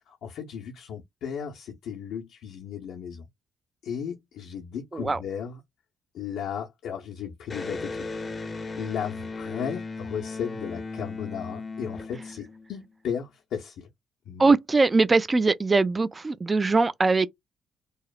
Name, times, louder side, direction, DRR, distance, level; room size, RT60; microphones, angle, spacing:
voice 1, 0.1-3.2 3.8-5.6 6.1-8.1 8.8-13.9 14.3-14.5, left 8 dB, 80° left, 0.6 m, -35 dB
Electric guitar, 7.5-13.0, left 3 dB, 35° left, 0.6 m, -36 dB
voice 2, 14.4-17.3, right 3 dB, 25° right, 0.3 m, -21 dB
2.9 x 2.0 x 2.2 m
cardioid pair, 90°, 0 cm